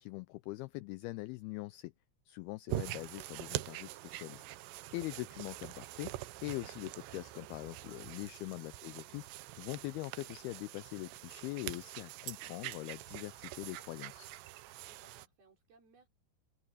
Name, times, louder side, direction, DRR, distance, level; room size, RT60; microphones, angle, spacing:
voice 1, 0.0-1.9 2.3-4.4 4.9-6.1 6.4-9.3 9.6-14.3, left 19 dB, 85° left, 2.2 m, -42 dB
sound 1, 2.7-15.3, right 17 dB, 80° right, 2.8 m, -44 dB
voice 2, 14.9-16.1, right 4 dB, 60° right, 7.4 m, -66 dB
omnidirectional pair, 5.0 m